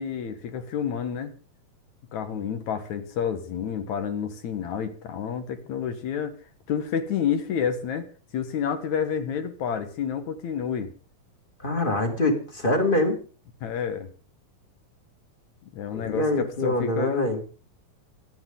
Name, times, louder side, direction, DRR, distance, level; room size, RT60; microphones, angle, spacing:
voice 1, 0.0-1.3 2.1-6.3 6.7-8.1 8.3-10.9 13.6-14.1 15.6-17.3, left 7 dB, 60° left, 9 dB, 2.2 m, -29 dB
voice 2, 11.6-13.2 15.9-17.4, left 1 dB, 15° left, 3 dB, 2.0 m, -24 dB
25.0 x 10.0 x 3.8 m, 0.39 s
omnidirectional pair, 4.4 m